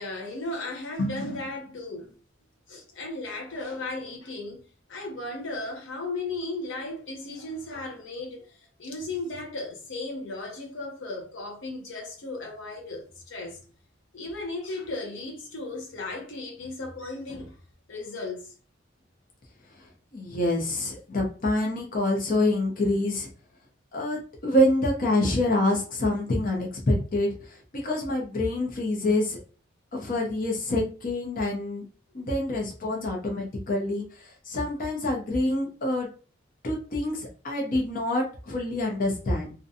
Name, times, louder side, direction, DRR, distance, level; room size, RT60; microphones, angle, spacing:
voice 1, 0.0-2.1 2.7-4.6 4.9-8.5 8.8-13.6 14.1-17.6 17.9-18.5, left 2 dB, 80° left, 0.7 m, -35 dB
voice 2, 20.1-23.3 23.9-29.4 29.9-31.8 32.1-36.1 36.6-39.5, left 1 dB, 45° left, 0.6 m, -26 dB
2.5 x 2.2 x 2.6 m
head